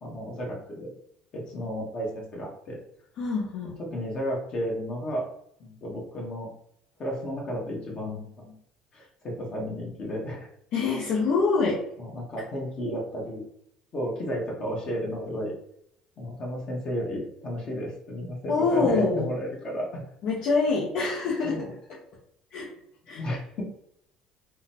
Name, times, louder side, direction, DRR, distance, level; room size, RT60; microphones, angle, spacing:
voice 1, 0.0-0.9 1.3-2.8 3.8-5.3 5.6-6.5 7.0-8.5 8.9-10.5 12.0-13.4 13.9-15.5 16.2-20.0 21.4-21.7 23.1-23.6, equal, 45° left, -2 dB, 1.3 m, -33 dB
voice 2, 3.2-3.8 10.7-11.8 18.5-19.3 20.2-22.0 22.5-22.7 23.1-23.4, left 4 dB, 65° left, -6 dB, 0.8 m, -25 dB
3.6 x 2.3 x 2.8 m, 0.73 s
hypercardioid pair, 70°, 2 cm